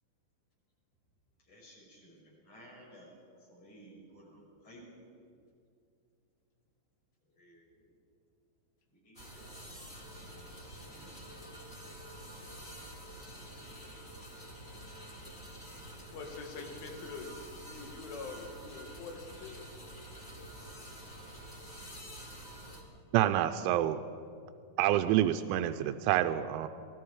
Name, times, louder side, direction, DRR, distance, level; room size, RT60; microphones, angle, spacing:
voice 1, 1.4-5.3 7.3-8.0 8.9-9.5 10.8-11.2 15.7-15.8, equal, 35° left, -3 dB, 7.6 m, -56 dB
sound 1, 9.1-22.8, equal, 10° left, 3.2 m, -48 dB
voice 2, 16.1-19.6, left 4 dB, 90° left, 3 dB, 4.5 m, -44 dB
voice 3, 23.1-24.0 24.8-26.7, right 12 dB, 90° right, 8 dB, 3.1 m, -27 dB
29.0 x 20.0 x 4.8 m, 2.4 s
omnidirectional pair, 5.3 m